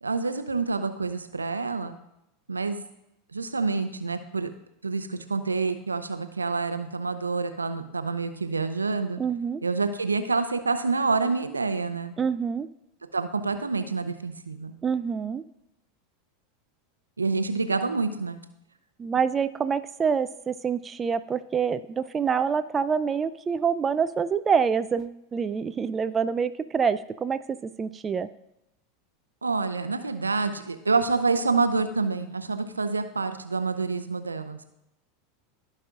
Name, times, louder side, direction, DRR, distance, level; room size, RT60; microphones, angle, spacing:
voice 1, 0.0-2.0 2.5-2.9 3.3-4.5 4.8-9.2 9.6-12.1 13.1-14.8 17.2-18.4 29.4-34.6, right 4 dB, 90° right, 10 dB, 0.6 m, -27 dB
voice 2, 9.2-9.6 12.2-12.7 14.8-15.4 19.0-28.3, right 6 dB, 25° right, 13 dB, 0.4 m, -26 dB
15.5 x 5.4 x 2.5 m, 0.85 s
figure-of-eight pair, 85°, 0 cm